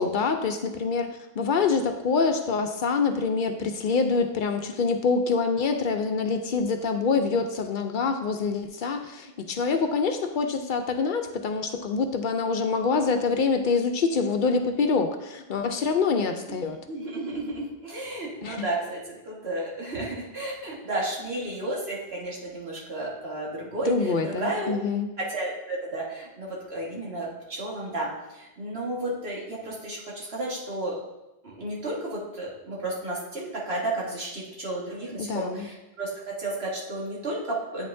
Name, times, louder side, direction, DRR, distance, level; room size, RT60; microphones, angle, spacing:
voice 1, 0.0-16.8 18.4-18.7 23.9-25.1 35.2-35.7, left 4 dB, 60° left, 6 dB, 0.6 m, -26 dB
voice 2, 16.5-24.7 25.2-31.0 31.4-37.9, right 2 dB, 80° right, -4 dB, 1.8 m, -32 dB
8.7 x 5.5 x 2.6 m, 0.98 s
omnidirectional pair, 1.0 m